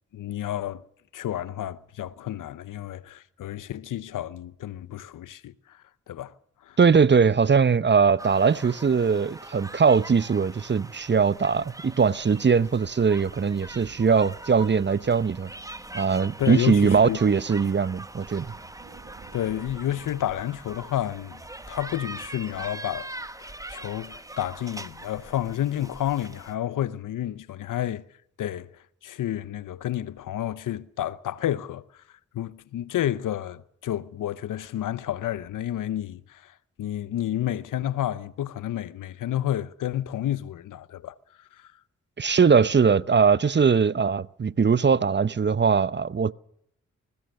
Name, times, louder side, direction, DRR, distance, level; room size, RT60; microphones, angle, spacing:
voice 1, 0.1-0.8 1.1-5.5 6.1-6.3 6.7-6.8 16.4-17.2 19.3-21.4 21.7-23.1 23.4-28.0 28.4-28.7 29.0-31.8 32.3-36.5 36.8-41.1 41.6-41.7, left 12 dB, 85° left, 0.8 m, -30 dB
voice 2, 6.8-15.5 15.9-18.5 42.2-46.3, right 5 dB, 35° right, 0.7 m, -21 dB
sound 1, 8.2-26.5, right 1 dB, 10° right, 1.1 m, -42 dB
sound 2, 12.8-22.7, right 6 dB, 60° right, 1.6 m, -51 dB
21.5 x 20.5 x 6.6 m
supercardioid pair, 45°, 31 cm